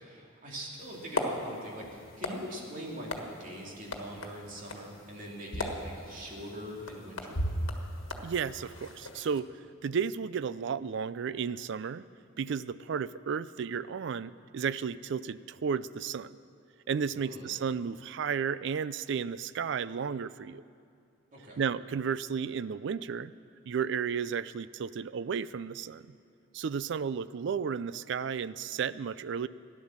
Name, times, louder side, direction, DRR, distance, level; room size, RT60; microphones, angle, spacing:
voice 1, 0.0-7.4 17.1-17.5 21.3-21.6, equal, 40° right, -3 dB, 2.7 m, -42 dB
sound 1, 0.8-9.4, left 1 dB, 75° left, 1.5 m, -38 dB
voice 2, 8.2-9.5 9.8-12.0 12.4-16.3 16.9-20.6 21.6-23.3 23.7-26.0 26.5-29.5, right 6 dB, 60° right, 17 dB, 0.4 m, -33 dB
15.5 x 11.0 x 7.3 m, 2.4 s
head